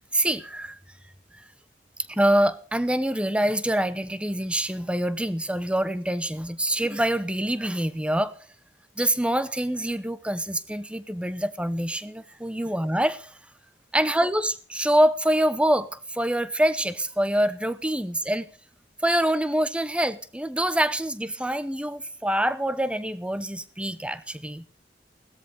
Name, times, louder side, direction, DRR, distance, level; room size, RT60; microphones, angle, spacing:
voice 1, 0.1-0.8 1.3-1.4 2.1-8.4 9.0-13.4 13.9-18.5 19.0-24.6, right 1 dB, 5° right, 0.8 m, -25 dB
17.0 x 13.5 x 5.2 m
head